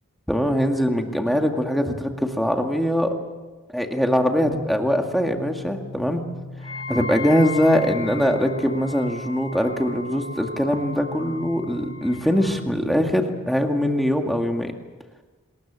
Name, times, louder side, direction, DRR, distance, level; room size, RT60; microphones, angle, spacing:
voice 1, 0.3-3.1 3.7-6.2 6.9-14.7, equal, ahead, 3 dB, 2.0 m, -22 dB
sound 1, 4.1-13.9, left 2 dB, 55° left, 1.1 m, -41 dB
Wind instrument woodwind instrument, 6.6-12.5, left 3 dB, 25° left, 2.5 m, -36 dB
25.5 x 20.5 x 7.5 m, 1.2 s
head